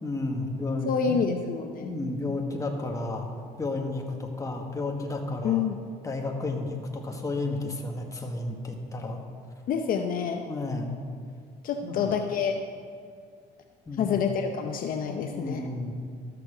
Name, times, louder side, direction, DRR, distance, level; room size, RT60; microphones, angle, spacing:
voice 1, 0.0-1.3 1.8-3.3 3.6-5.7 6.0-9.2 10.5-11.0 11.8-12.1 13.9-14.2 15.3-15.9, left 2 dB, 20° left, 1 dB, 1.4 m, -32 dB
voice 2, 0.9-2.0 5.4-5.8 9.7-10.4 11.6-12.6 14.0-15.7, left 6 dB, 55° left, 5 dB, 0.7 m, -27 dB
13.0 x 6.9 x 5.0 m, 2.2 s
cardioid pair, 110°, 17 cm